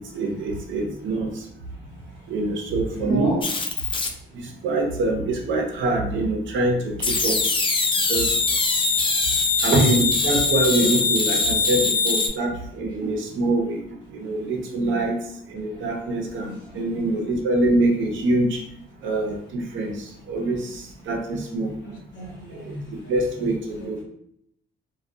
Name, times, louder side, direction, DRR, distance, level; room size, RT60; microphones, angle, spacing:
voice 1, 0.1-1.3 2.3-3.4 4.3-7.4 8.1-8.4 9.6-13.8 14.1-15.2 15.5-16.5 16.7-18.6 19.0-21.7 22.5-22.8 23.1-24.0, right 2 dB, 70° right, 1 dB, 0.6 m, -24 dB
voice 2, 3.0-3.4 15.7-15.8 16.4-16.8 21.8-23.1, right 2 dB, 70° left, -2 dB, 0.9 m, -32 dB
sound 1, 3.4-4.1 7.0-12.3, left 4 dB, 25° left, 0.3 m, -22 dB
2.5 x 2.2 x 2.3 m, 0.70 s
cardioid pair, 90°, 20 cm